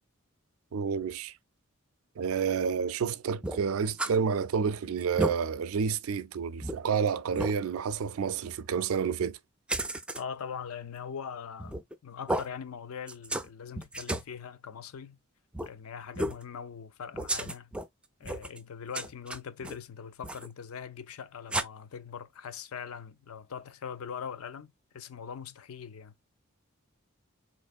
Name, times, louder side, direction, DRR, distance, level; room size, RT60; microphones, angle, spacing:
voice 1, 0.7-1.3 2.2-9.4, right 6 dB, 75° right, 0.4 m, -29 dB
sound 1, 3.4-4.2 4.5-4.6 5.0-5.4 5.9-6.0 6.6-6.8 7.4-7.5 9.7-10.2 11.6-11.9 12.3-12.5 13.1-13.5 13.8-14.3 15.5-15.7 16.1-16.4 17.1-17.9 18.2-18.6 18.9-19.8 20.2-20.5 21.5-21.6, right 1 dB, 5° right, 0.3 m, -32 dB
voice 2, 10.2-15.2 15.6-17.7 18.2-26.1, left 7 dB, 85° left, 0.5 m, -41 dB
4.2 x 3.2 x 2.3 m
head